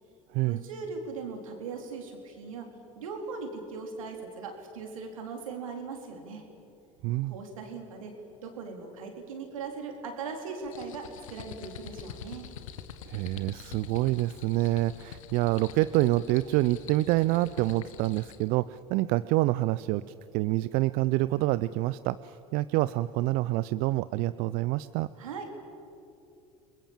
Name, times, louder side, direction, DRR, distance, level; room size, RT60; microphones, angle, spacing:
voice 1, 0.5-2.7 3.0-6.4 7.2-8.2 8.4-12.4 25.2-25.5, right 4 dB, 80° right, 3 dB, 3.9 m, -39 dB
voice 2, 7.0-7.3 13.1-20.0 20.3-25.1, right 17 dB, 60° right, 16 dB, 0.5 m, -27 dB
sound 1, 10.6-18.5, left 8 dB, 80° left, 1.4 m, -46 dB
28.5 x 21.0 x 7.5 m, 2.8 s
hypercardioid pair, 75°, 17 cm